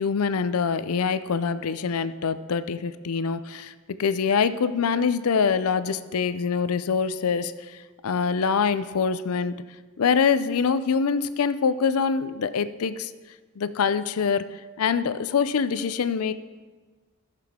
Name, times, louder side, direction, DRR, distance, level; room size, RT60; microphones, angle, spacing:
voice 1, 0.0-3.7 4.0-9.6 10.0-13.1 13.6-16.3, left 6 dB, 75° left, 13 dB, 0.5 m, -24 dB
15.0 x 6.6 x 3.7 m, 1.4 s
head